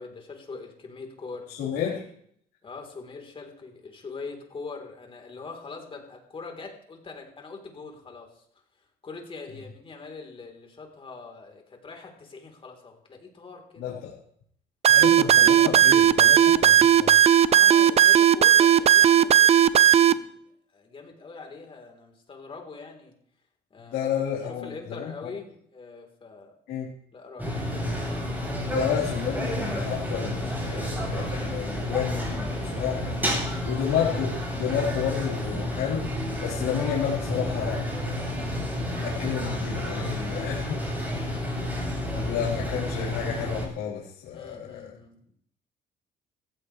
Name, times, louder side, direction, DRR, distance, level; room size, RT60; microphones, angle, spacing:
voice 1, 0.0-1.5 1.9-2.1 2.6-8.4 9.0-14.0 17.4-20.4 20.7-23.1 23.7-26.5 27.1-28.0 41.0-41.7 44.3-45.2, left 4 dB, 30° left, 2 dB, 4.1 m, -43 dB
voice 2, 1.5-2.0 13.8-14.1 14.9-17.2 23.9-25.1 26.7-26.9 28.7-33.1 33.7-38.0 39.0-41.3 42.1-44.9, left 8 dB, 90° left, -6 dB, 4.3 m, -31 dB
sound 1, 14.8-20.1, right 10 dB, 40° right, 0.6 m, -16 dB
sound 2, 27.4-43.7, left 1 dB, 10° right, 7.8 m, -30 dB
18.5 x 15.5 x 3.4 m, 0.67 s
cardioid pair, 110°, 17 cm